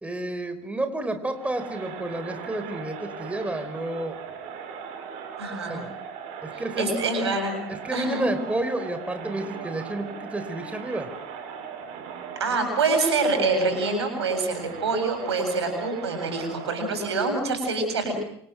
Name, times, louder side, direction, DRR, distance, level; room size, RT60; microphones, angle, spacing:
voice 1, 0.0-4.2 5.7-5.9 6.4-6.9 7.7-11.1, right 2 dB, 10° right, 8 dB, 4.5 m, -30 dB
Crowd, 1.3-17.5, right 7 dB, 60° right, 7.8 m, -39 dB
voice 2, 5.4-5.8 6.5-7.6 7.9-8.3 12.4-18.1, right 3 dB, 85° right, 6 dB, 7.6 m, -26 dB
28.0 x 27.0 x 6.3 m, 0.69 s
hypercardioid pair, 75°, 14 cm